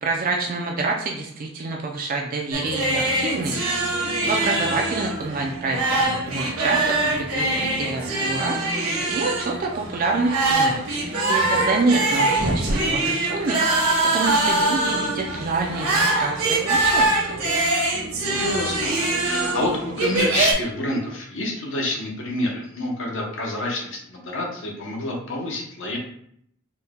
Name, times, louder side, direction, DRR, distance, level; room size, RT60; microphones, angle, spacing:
voice 1, 0.0-8.8 9.1-13.6 14.1-17.4, right 3 dB, 40° right, 0 dB, 0.4 m, -27 dB
sound 1, 2.5-20.5, right 2 dB, 75° right, 1.0 m, -23 dB
voice 2, 18.3-19.0 19.2-19.7 20.0-26.0, left 1 dB, 60° left, -1 dB, 0.9 m, -28 dB
4.2 x 2.2 x 3.6 m, 0.69 s
head